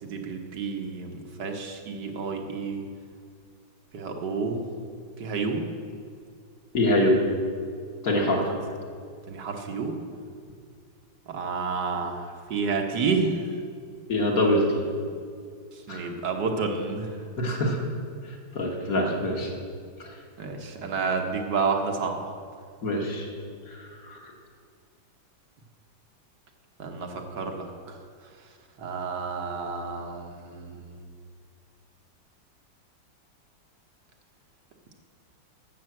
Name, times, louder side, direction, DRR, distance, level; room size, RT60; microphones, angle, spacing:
voice 1, 0.0-2.8 3.9-4.6 5.2-5.7 8.4-8.6 9.3-10.0 11.3-13.4 15.7-17.2 20.4-22.3 26.8-28.0 28.8-31.0, right 4 dB, 70° right, 3 dB, 1.7 m, -30 dB
voice 2, 6.7-7.2 8.0-8.4 14.1-14.8 15.9-16.1 17.4-17.8 18.5-19.5 20.0-20.1 22.8-23.3 23.7-24.3, left 1 dB, 55° left, 0 dB, 2.0 m, -24 dB
12.0 x 6.9 x 7.6 m, 2.2 s
omnidirectional pair, 2.0 m